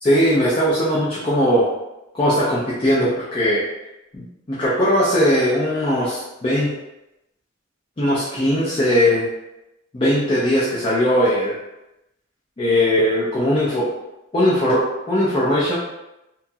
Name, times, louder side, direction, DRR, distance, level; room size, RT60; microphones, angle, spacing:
voice 1, 0.0-1.7 2.1-3.6 4.1-6.7 8.0-9.3 9.9-11.5 12.6-13.9 14.3-15.8, equal, 25° left, -8 dB, 0.5 m, -19 dB
2.9 x 2.3 x 2.7 m, 0.94 s
head